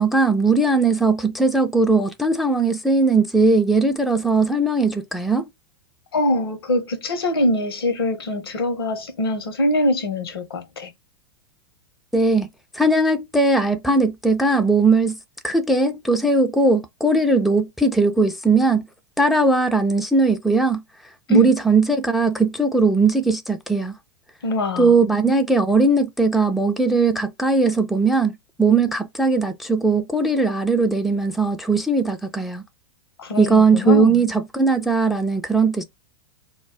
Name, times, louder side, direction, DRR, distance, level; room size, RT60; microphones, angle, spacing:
voice 1, 0.0-5.5 12.1-12.5 12.7-15.2 15.4-18.9 19.2-20.8 21.3-24.0 24.8-32.6 33.4-35.8, right 3 dB, ahead, 0.3 m, -19 dB
voice 2, 6.1-10.9 21.3-21.5 24.4-25.1 33.2-34.3, left 1 dB, 75° left, 0.7 m, -23 dB
2.2 x 2.0 x 3.4 m
figure-of-eight pair, 95°, 12 cm